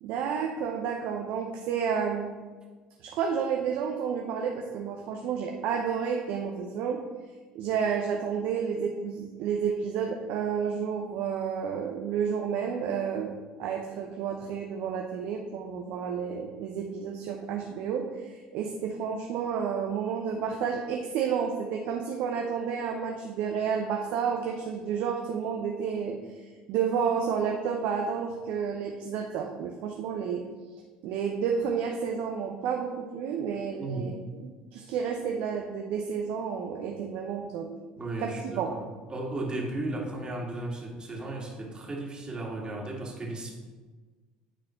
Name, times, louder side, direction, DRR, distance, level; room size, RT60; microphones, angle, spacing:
voice 1, 0.0-2.3 3.0-7.0 7.5-30.4 31.0-37.7 38.2-38.7, right 7 dB, 65° right, 2 dB, 0.7 m, -31 dB
voice 2, 38.0-38.8 39.1-43.5, right 2 dB, 25° right, -1 dB, 2.1 m, -35 dB
9.2 x 4.1 x 4.5 m, 1.4 s
hypercardioid pair, 70°, 3 cm